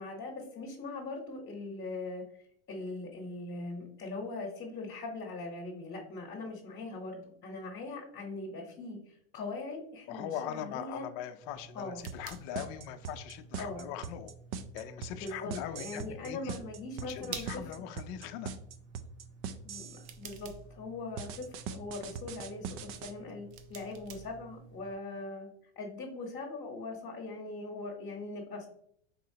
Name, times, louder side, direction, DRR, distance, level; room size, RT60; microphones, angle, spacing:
voice 1, 0.0-2.2 2.7-11.1 11.7-12.0 13.6-13.8 15.2-17.6 19.6-25.5 25.8-28.7, left 3 dB, 30° left, 0 dB, 1.0 m, -41 dB
voice 2, 10.1-14.3 14.7-16.6 17.0-18.5, left 10 dB, 55° left, 9 dB, 0.5 m, -41 dB
sound 1, 11.4-24.9, right 5 dB, 70° right, 0.7 m, -51 dB
sound 2, 12.1-20.1 21.2-23.1, right 7 dB, 40° right, 0.4 m, -41 dB
4.1 x 2.8 x 2.7 m, 0.65 s
hypercardioid pair, 110°, 34 cm